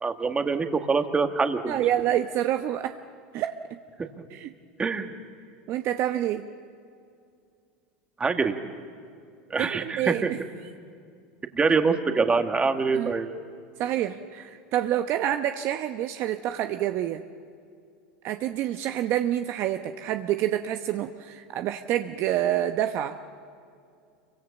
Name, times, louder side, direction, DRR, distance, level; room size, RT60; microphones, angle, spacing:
voice 1, 0.0-1.7 4.2-4.3 4.8-5.1 8.2-8.5 9.5-10.3 11.5-13.3, right 4 dB, 20° right, 6 dB, 1.8 m, -24 dB
voice 2, 1.7-3.0 3.3-3.8 4.3-4.5 5.7-6.5 9.6-10.4 12.9-13.1 13.8-17.2 18.2-23.2, right 12 dB, 50° right, 7 dB, 0.9 m, -27 dB
27.5 x 24.0 x 7.2 m, 2.4 s
hypercardioid pair, 105°, 5 cm